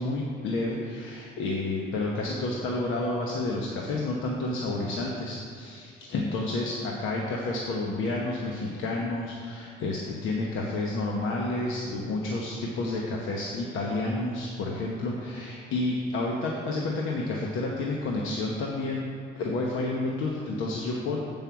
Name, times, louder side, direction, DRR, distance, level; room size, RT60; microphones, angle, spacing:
voice 1, 0.0-19.0 19.3-21.2, left 2 dB, 80° left, -2 dB, 1.1 m, -30 dB
7.5 x 5.4 x 7.0 m, 2.3 s
cardioid pair, 90°, 20 cm